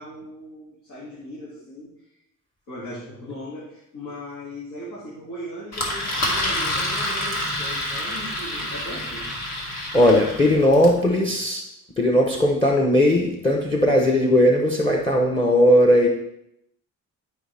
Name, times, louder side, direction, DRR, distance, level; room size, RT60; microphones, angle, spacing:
voice 1, 0.0-1.9 2.7-9.3 10.5-11.3, equal, 85° left, -7 dB, 2.6 m, -38 dB
Engine, 5.7-11.0, left 1 dB, 50° left, 2.2 m, -28 dB
voice 2, 9.9-11.6 12.0-16.1, left 1 dB, 15° left, 1 dB, 1.0 m, -18 dB
12.0 x 5.2 x 3.5 m, 0.82 s
cardioid pair, 110°, 33 cm